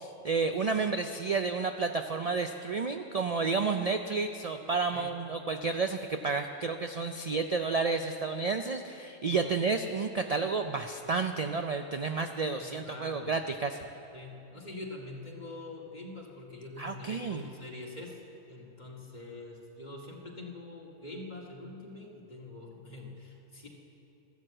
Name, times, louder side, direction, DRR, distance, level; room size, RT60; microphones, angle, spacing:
voice 1, 0.0-13.8 16.8-17.4, right 4 dB, 60° right, 6 dB, 0.4 m, -31 dB
voice 2, 12.6-13.3 14.1-18.2 18.5-23.7, left 2 dB, 35° left, -2 dB, 2.1 m, -44 dB
14.5 x 12.0 x 7.7 m, 2.9 s
omnidirectional pair, 1.3 m